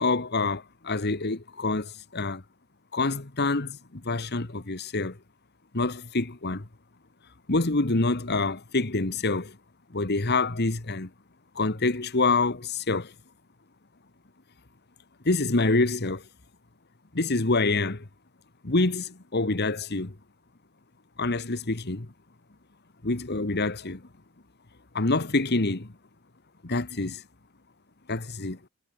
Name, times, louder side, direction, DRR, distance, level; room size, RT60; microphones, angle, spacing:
voice 1, 0.0-2.4 2.9-5.2 5.7-6.7 7.5-9.5 9.9-11.1 11.5-13.1 15.2-16.2 17.1-18.1 18.6-20.2 21.2-22.1 23.0-24.0 24.9-25.9 26.6-27.2 28.1-28.6, left 3 dB, 50° left, 1.5 m, -26 dB
head